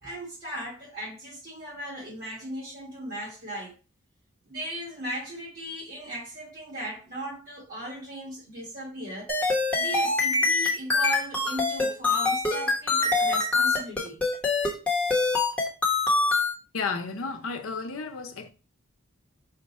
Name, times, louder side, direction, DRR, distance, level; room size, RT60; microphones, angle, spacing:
voice 1, 0.0-3.7 4.5-9.3 9.8-14.2, right 1 dB, 45° right, 1.8 m, -37 dB
sound 1, 9.3-16.5, left 3 dB, 5° left, 0.9 m, -24 dB
voice 2, 16.7-18.5, left 4 dB, 80° left, 0.6 m, -32 dB
5.0 x 2.3 x 4.1 m
head